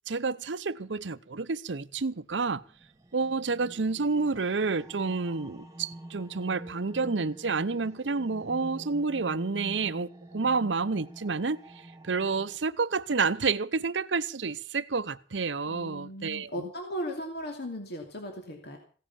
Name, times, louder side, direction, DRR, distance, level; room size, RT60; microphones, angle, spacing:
voice 1, 0.1-2.6 3.1-11.6 12.0-16.7, right 4 dB, 90° right, 0.8 m, -29 dB
sound 1, 2.4-12.6, right 1 dB, 20° right, 1.6 m, -47 dB
voice 2, 15.7-18.8, equal, 65° left, 2.7 m, -37 dB
16.5 x 10.0 x 7.3 m
head